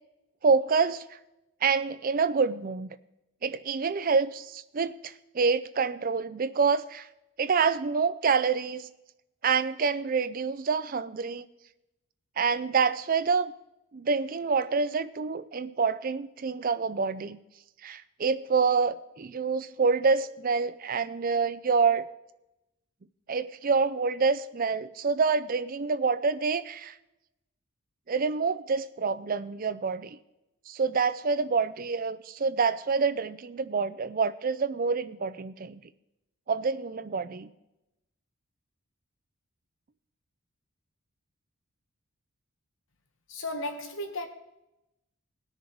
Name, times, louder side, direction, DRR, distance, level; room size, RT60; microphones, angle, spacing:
voice 1, 0.4-1.0 1.6-2.9 3.4-7.1 7.4-8.9 9.4-11.4 12.4-13.5 13.9-17.4 17.8-22.1 23.3-26.9 28.1-30.2 30.7-35.8 36.5-37.5, right 5 dB, 40° right, 0.4 m, -27 dB
voice 2, 43.3-44.3, left 1 dB, 60° left, 1.1 m, -34 dB
19.0 x 6.6 x 4.6 m
head